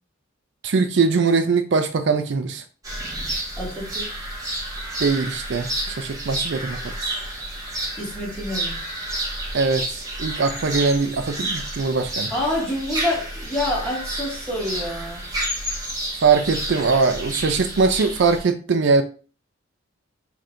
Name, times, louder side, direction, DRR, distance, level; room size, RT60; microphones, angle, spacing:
voice 1, 0.6-2.6 5.0-7.1 9.5-12.3 16.2-19.0, right 4 dB, 60° right, 8 dB, 0.4 m, -21 dB
sound 1, 2.8-18.4, right 1 dB, 20° right, 1.2 m, -30 dB
voice 2, 3.6-4.0 8.0-8.8 12.3-15.3, left 1 dB, 5° left, -6 dB, 1.9 m, -27 dB
5.9 x 3.2 x 2.5 m, 0.38 s
head